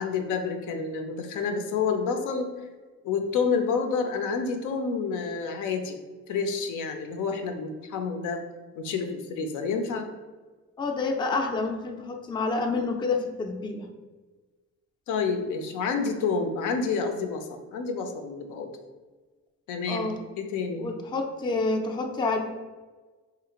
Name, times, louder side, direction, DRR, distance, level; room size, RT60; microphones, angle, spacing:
voice 1, 0.0-2.5 3.0-6.0 6.3-8.4 8.8-10.1 15.1-18.7 19.7-20.1 20.4-20.9, left 5 dB, 85° left, 6 dB, 0.5 m, -29 dB
voice 2, 10.8-13.9 19.9-20.2 20.8-22.4, left 3 dB, 15° left, 4 dB, 0.3 m, -28 dB
3.1 x 2.4 x 2.9 m, 1.3 s
cardioid pair, 90°, 30 cm